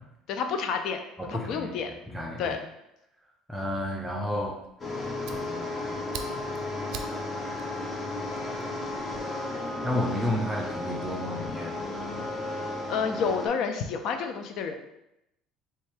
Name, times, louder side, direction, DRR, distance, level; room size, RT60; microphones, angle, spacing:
voice 1, 0.3-1.9 2.4-2.6 12.9-14.7, left 6 dB, 60° left, 6 dB, 0.5 m, -30 dB
voice 2, 1.2-1.7 2.1-2.6 3.5-4.6 5.3-6.0 9.8-11.7, left 1 dB, 10° right, -1 dB, 0.5 m, -31 dB
Fire, 4.6-9.2, right 7 dB, 65° right, 0.4 m, -46 dB
sound 1, 4.8-13.5, left 2 dB, 25° left, 0.8 m, -34 dB
3.3 x 2.7 x 3.3 m, 0.85 s
supercardioid pair, 110°, 0 cm